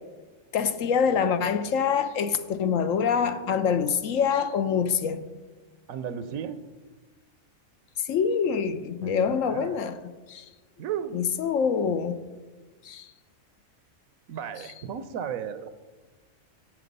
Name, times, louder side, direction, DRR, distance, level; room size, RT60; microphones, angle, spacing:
voice 1, 0.5-5.3 8.0-10.0 10.3-10.4 11.1-12.2 12.8-13.1, left 6 dB, 75° left, 1.1 m, -25 dB
voice 2, 5.9-6.7 9.0-9.8 10.8-11.3 14.3-15.7, right 8 dB, 85° right, 1.1 m, -35 dB
16.5 x 6.0 x 5.4 m
omnidirectional pair, 1.4 m